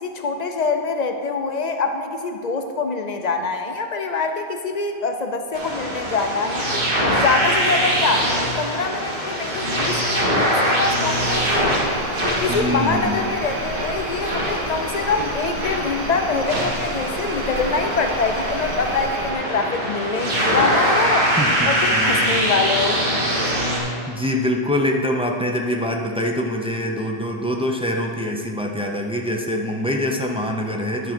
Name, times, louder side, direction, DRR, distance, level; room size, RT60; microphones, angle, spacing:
voice 1, 0.0-8.3 8.6-11.8 12.4-21.3 21.6-23.0, left 4 dB, 50° left, 5 dB, 0.5 m, -24 dB
sound 1, 5.5-23.8, equal, 55° right, 1.7 m, -23 dB
sound 2, 11.2-19.3, right 3 dB, 75° right, 1.1 m, -35 dB
voice 2, 12.5-13.3 21.4-22.2 24.1-31.1, equal, 10° right, 1 dB, 0.3 m, -24 dB
10.5 x 3.8 x 5.9 m, 2.5 s
omnidirectional pair, 1.1 m